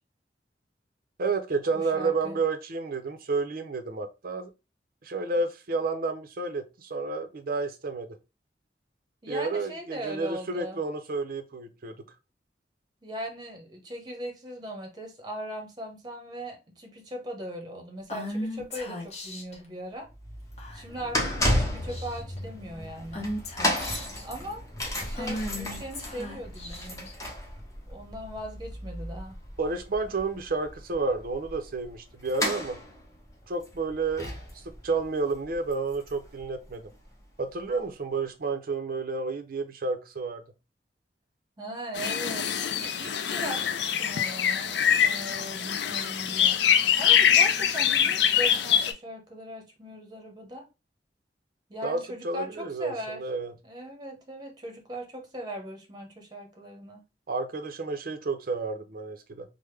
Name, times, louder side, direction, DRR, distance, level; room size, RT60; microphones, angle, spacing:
voice 1, 1.2-4.5 5.0-8.1 9.3-12.0 29.6-32.8 33.5-36.8 37.4-40.4 51.8-52.0 52.2-53.5 57.3-59.4, right 3 dB, 55° right, 0.5 m, -30 dB
voice 2, 1.7-2.4 9.2-10.8 13.0-20.1 20.7-23.3 24.2-27.1 27.9-29.4 41.6-46.6 47.0-50.7 51.7-53.2 53.6-57.0, equal, 25° right, 0.8 m, -39 dB
Female speech woman speaking / Whispering, 18.1-19.6 20.6-21.0 21.4-21.6 21.9-22.4 23.1-24.2 25.1-27.1, left 1 dB, 40° left, 1.0 m, -36 dB
sound 1, 20.1-37.0 37.7-37.8, left 1 dB, 20° left, 0.8 m, -34 dB
sound 2, 42.0-48.9, left 8 dB, 70° left, 0.4 m, -24 dB
3.4 x 2.1 x 3.1 m
head